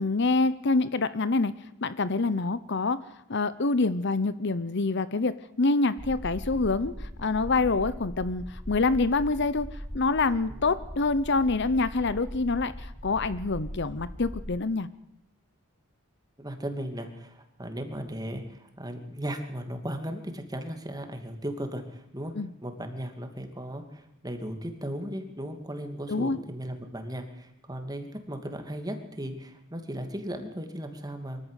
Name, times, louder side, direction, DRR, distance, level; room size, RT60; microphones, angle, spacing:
voice 1, 0.0-1.5 1.8-3.0 3.3-9.7 9.9-14.9 22.3-22.5 26.1-26.4, left 3 dB, 55° left, 15 dB, 0.9 m, -26 dB
sound 1, 6.0-14.6, equal, 5° left, 0.7 m, -40 dB
voice 2, 16.4-22.3 22.6-31.4, equal, 20° right, 6 dB, 2.6 m, -36 dB
23.5 x 14.5 x 8.3 m, 0.86 s
head